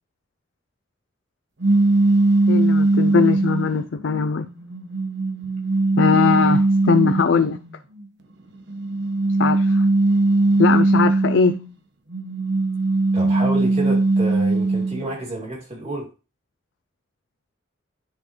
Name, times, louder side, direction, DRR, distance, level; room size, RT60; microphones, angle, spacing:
sound 1, 1.6-3.8 4.4-7.6 8.7-11.7 12.1-15.1, right 2 dB, 60° right, 0.9 m, -19 dB
voice 1, 2.5-4.5 6.0-7.6 9.4-9.9 10.6-11.5, left 5 dB, 75° left, 0.4 m, -20 dB
voice 2, 13.1-16.1, right 1 dB, 35° right, 2.6 m, -29 dB
10.5 x 4.4 x 3.2 m
head